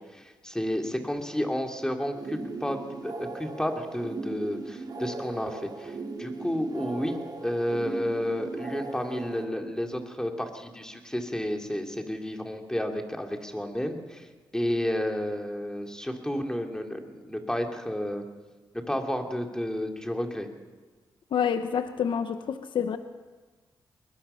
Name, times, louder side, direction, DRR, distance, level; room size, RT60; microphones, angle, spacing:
voice 1, 0.0-2.8 3.0-7.2 7.4-14.3 14.5-18.2 18.7-20.5, equal, 10° left, 3 dB, 2.9 m, -31 dB
sound 1, 2.1-9.4, right 3 dB, 55° right, 2.8 m, -38 dB
voice 2, 21.3-23.0, left 7 dB, 75° left, 9 dB, 0.9 m, -28 dB
21.5 x 21.0 x 5.7 m, 1.3 s
cardioid pair, 65°, 8 cm